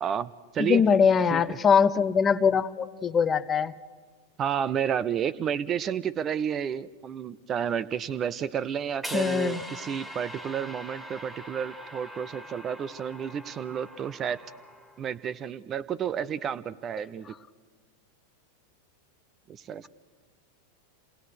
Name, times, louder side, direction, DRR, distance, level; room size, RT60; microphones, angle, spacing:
voice 1, 0.0-0.8 1.3-1.6 4.4-14.4 15.0-17.3 19.5-19.9, right 8 dB, 25° right, 18 dB, 0.6 m, -31 dB
voice 2, 0.6-3.7 9.1-9.6, left 6 dB, 20° left, 15 dB, 0.6 m, -22 dB
sound 1, 9.0-15.2, equal, 10° right, 2.0 m, -42 dB
27.5 x 18.5 x 6.6 m, 1.4 s
figure-of-eight pair, 90°, 0 cm